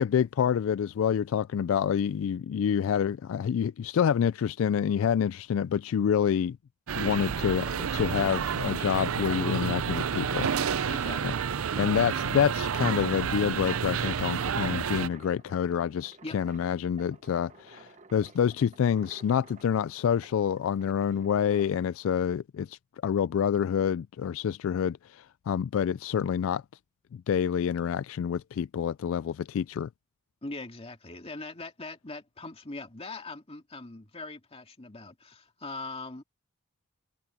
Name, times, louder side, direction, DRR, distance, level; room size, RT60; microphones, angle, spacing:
voice 1, 0.0-6.6 6.9-10.5 11.8-26.6 27.3-29.9, left 8 dB, 65° left, 0.3 m, -27 dB
sound 1, 6.9-15.1, right 7 dB, 85° right, 0.6 m, -30 dB
voice 2, 10.8-11.4 16.2-16.4 30.4-36.2, left 2 dB, 30° left, 2.2 m, -41 dB
sound 2, 13.7-21.9, right 3 dB, 35° right, 1.3 m, -53 dB
head